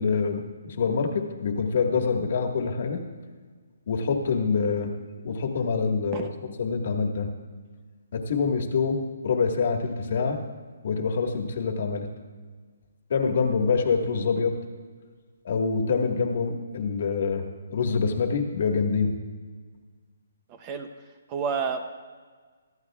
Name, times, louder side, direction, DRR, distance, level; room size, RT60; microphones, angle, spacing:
voice 1, 0.0-3.0 3.9-4.9 5.2-6.3 6.6-7.3 8.1-9.0 9.2-10.4 10.8-12.1 13.1-14.5 15.5-17.4 17.7-19.1, left 5 dB, 45° left, 3 dB, 1.6 m, -25 dB
voice 2, 20.5-20.9 21.3-21.8, right 6 dB, 20° right, 7 dB, 0.6 m, -29 dB
23.5 x 13.5 x 2.4 m, 1.5 s
hypercardioid pair, 175°, 0 cm